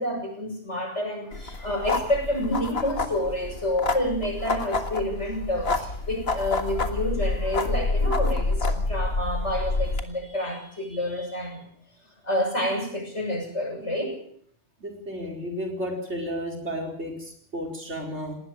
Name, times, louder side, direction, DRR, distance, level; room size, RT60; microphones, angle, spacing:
voice 1, 0.0-11.7 12.2-14.2, left 1 dB, 75° left, 3 dB, 7.2 m, -29 dB
sound 1, 1.3-10.0, left 3 dB, 60° left, 2.0 m, -28 dB
voice 2, 14.8-18.4, equal, 75° right, 1 dB, 4.9 m, -33 dB
19.5 x 19.0 x 7.6 m, 0.63 s
omnidirectional pair, 1.2 m